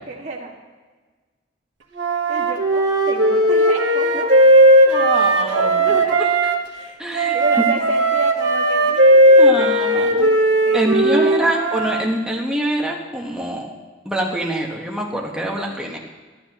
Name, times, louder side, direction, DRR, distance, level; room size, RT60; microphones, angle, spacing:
voice 1, 0.1-0.5 2.3-4.3 5.4-6.2 6.7-6.9 7.3-10.4 10.6-11.5, right 2 dB, 40° right, -4 dB, 1.7 m, -31 dB
Wind instrument woodwind instrument, 1.9-6.6 7.2-12.0, right 1 dB, 80° right, 1.3 m, -16 dB
voice 2, 4.9-5.9 6.2-6.3 7.0-7.4 9.4-10.4 10.7-13.7 14.0-16.0, right 1 dB, 5° right, -1 dB, 1.2 m, -24 dB
14.0 x 11.5 x 3.0 m, 1.3 s
head